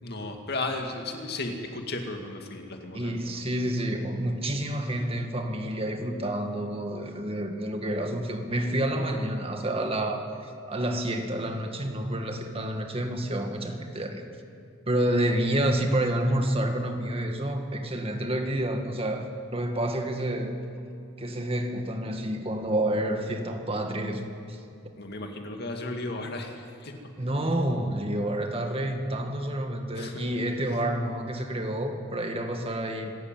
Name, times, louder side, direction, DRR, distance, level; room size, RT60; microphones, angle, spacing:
voice 1, 0.0-3.4 4.8-5.0 12.3-12.4 25.0-27.0 29.9-30.2, left 2 dB, 55° left, 4 dB, 2.2 m, -35 dB
voice 2, 2.9-14.3 14.9-20.5 21.2-24.6 27.2-33.3, right 1 dB, 30° right, 4 dB, 1.9 m, -29 dB
25.5 x 13.0 x 9.1 m, 2.4 s
head